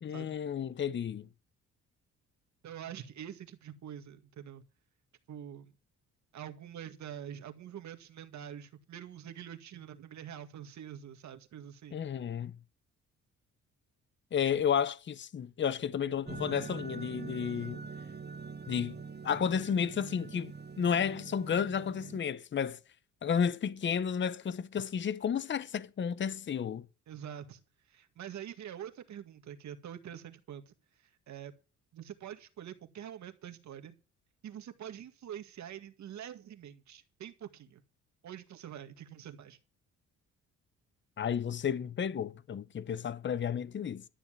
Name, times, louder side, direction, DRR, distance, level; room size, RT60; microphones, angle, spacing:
voice 1, 0.0-1.3 11.9-12.5 14.3-17.8 18.7-19.0 19.2-22.8 23.2-26.8 41.2-44.0, left 7 dB, 40° left, 0.8 m, -32 dB
voice 2, 2.6-4.6 5.3-5.7 6.3-12.0 27.1-27.6 27.9-30.7 31.3-31.5 31.9-33.9 34.4-37.8 38.2-39.6, right 9 dB, 70° right, 2.0 m, -45 dB
sound 1, 16.2-22.2, right 5 dB, 35° right, 1.0 m, -44 dB
12.5 x 7.2 x 7.5 m
cardioid pair, 90°, 30 cm